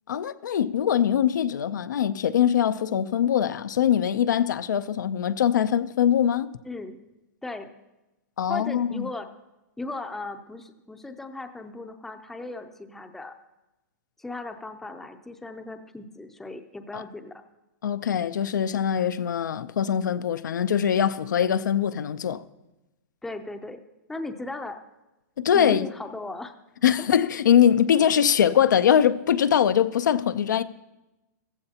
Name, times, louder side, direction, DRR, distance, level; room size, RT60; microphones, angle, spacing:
voice 1, 0.1-6.5 8.4-9.0 16.9-17.0 17.8-22.4 25.4-25.9 26.8-30.6, left 9 dB, 90° left, 0.6 m, -22 dB
voice 2, 6.6-7.0 7.4-7.7 8.5-9.3 9.8-13.3 14.2-17.4 23.2-23.8 24.1-24.8 25.5-26.6, left 2 dB, 5° left, 0.5 m, -37 dB
15.0 x 14.5 x 2.8 m
hypercardioid pair, 155°, 10 cm